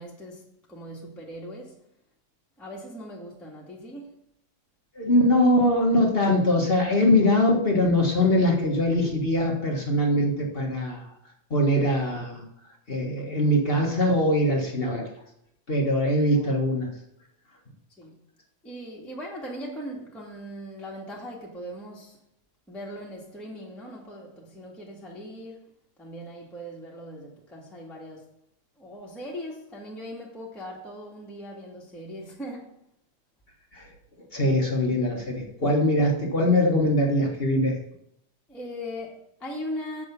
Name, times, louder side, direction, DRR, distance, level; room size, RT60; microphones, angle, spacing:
voice 1, 0.0-1.8 2.6-4.2 16.3-16.5 18.0-18.1 18.6-22.2 22.7-25.6 26.0-28.3 28.8-32.7 38.5-40.0, equal, ahead, 1.5 m, -39 dB
voice 2, 4.9-11.1 11.5-12.4 12.9-15.0 15.7-16.9 33.7-33.8 34.3-37.8, left 1 dB, 35° left, 1.0 m, -22 dB
9.0 x 7.0 x 5.3 m
omnidirectional pair, 3.4 m